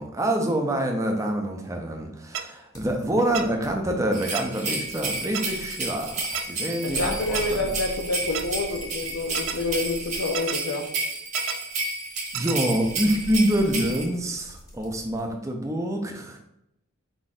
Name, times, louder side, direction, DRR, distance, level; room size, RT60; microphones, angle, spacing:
voice 1, 0.0-7.6 12.3-16.4, right 1 dB, 15° right, 2 dB, 0.5 m, -26 dB
sound 1, 2.3-2.4 3.3-3.4 4.3-4.4 5.3-5.4 6.3-6.4 7.3-7.4 8.3-8.4 9.3-9.5 10.3-10.6 11.3-11.5 12.3-12.6, right 9 dB, 75° right, 0.4 m, -29 dB
sound 2, 2.7-4.0 4.4-10.6 12.1-15.3, equal, 15° left, 0.8 m, -44 dB
sound 3, 4.1-14.1, right 3 dB, 35° right, 0.9 m, -31 dB
voice 2, 6.8-10.9, left 2 dB, 80° left, 1 dB, 0.5 m, -28 dB
4.6 x 2.5 x 4.1 m, 0.82 s
head